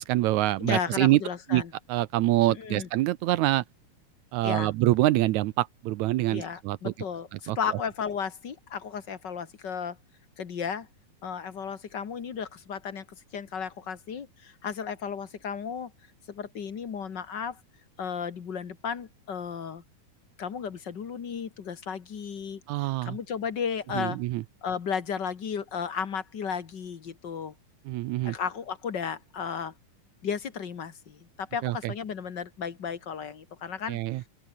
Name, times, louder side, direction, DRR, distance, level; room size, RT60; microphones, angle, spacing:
voice 1, 0.0-1.2 1.5-1.6 1.9-3.6 4.3-6.9 7.5-7.6 22.7-23.2 23.9-24.4 27.9-28.4 31.6-31.9 33.9-34.2, right 17 dB, 75° right, 1.9 m, -25 dB
voice 2, 0.6-1.7 2.5-2.9 4.4-4.7 6.3-10.0 10.4-10.9 11.2-13.0 13.3-15.9 16.3-17.6 18.0-19.8 20.4-22.6 23.0-24.2 24.6-27.5 28.2-29.7 30.2-34.0, left 7 dB, 40° left, 1.8 m, -34 dB
open air
omnidirectional pair, 3.6 m